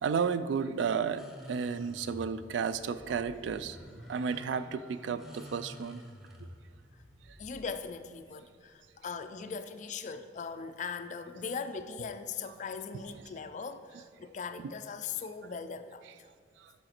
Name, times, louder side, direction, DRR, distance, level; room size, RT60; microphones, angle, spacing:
voice 1, 0.0-3.8 4.1-6.0 13.1-13.2 14.6-14.7 16.6-16.7, right 6 dB, 75° right, 13 dB, 0.3 m, -32 dB
sound 1, 1.2-9.5, equal, ahead, 0.7 m, -51 dB
voice 2, 7.4-16.1, left 5 dB, 40° left, 10 dB, 0.3 m, -40 dB
6.5 x 4.9 x 4.3 m, 2.1 s
head